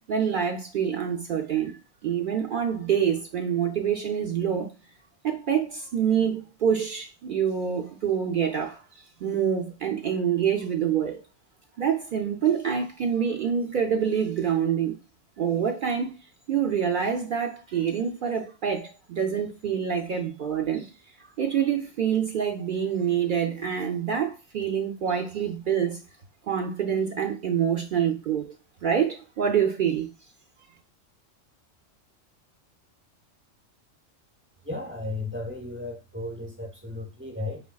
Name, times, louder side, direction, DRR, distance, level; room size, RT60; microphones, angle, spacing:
voice 1, 0.1-4.7 5.2-11.2 11.8-15.0 15.4-16.1 16.5-20.9 21.4-26.0 26.5-28.5 28.8-30.1, right 8 dB, 65° right, 0.5 m, -26 dB
voice 2, 34.6-37.6, left 2 dB, 10° right, 0.9 m, -34 dB
5.0 x 3.5 x 2.3 m
omnidirectional pair, 1.3 m